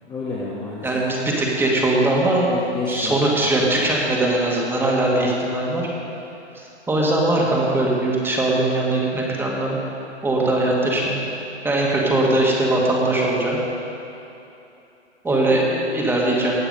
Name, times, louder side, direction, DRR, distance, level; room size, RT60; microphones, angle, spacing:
voice 1, 0.0-0.9 2.5-3.5 15.3-15.8, left 3 dB, 15° left, -6 dB, 1.3 m, -30 dB
voice 2, 0.8-2.5 2.9-5.9 6.5-9.8 10.2-11.2 11.6-13.6 15.2-15.6 15.9-16.5, right 2 dB, 5° right, -3 dB, 1.8 m, -20 dB
18.5 x 6.9 x 5.4 m, 2.9 s
hypercardioid pair, 140°, 34 cm